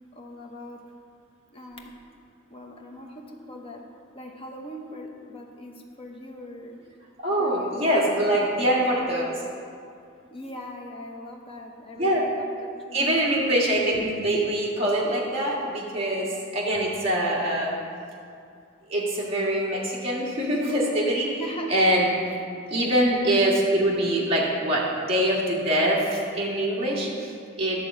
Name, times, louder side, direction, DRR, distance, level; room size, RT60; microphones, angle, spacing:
voice 1, 0.1-0.8 1.5-1.9 2.5-3.8 4.1-6.8 7.4-8.8 10.3-13.4 21.4-21.7 22.3-22.5 22.9-23.1, equal, 25° left, 1 dB, 0.9 m, -41 dB
voice 2, 7.2-9.4 11.9-12.2 12.9-17.8 18.9-21.4 21.7-22.1 22.7-27.8, right 1 dB, 30° right, -5 dB, 1.7 m, -24 dB
11.0 x 3.8 x 7.4 m, 2.4 s
head